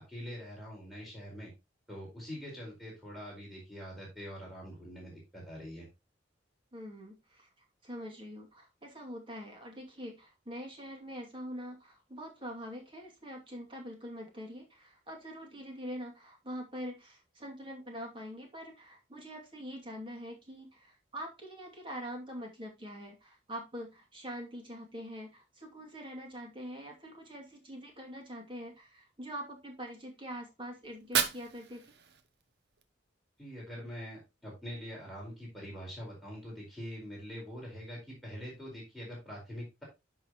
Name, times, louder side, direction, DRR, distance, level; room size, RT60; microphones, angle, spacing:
voice 1, 0.0-1.5 1.9-5.9 33.4-39.8, equal, ahead, -4 dB, 4.5 m, -44 dB
voice 2, 6.7-7.5 7.8-31.9, equal, 25° right, 1 dB, 2.5 m, -44 dB
Fire, 30.8-32.8, right 7 dB, 60° right, 0.9 m, -35 dB
10.5 x 6.0 x 3.0 m, 0.25 s
head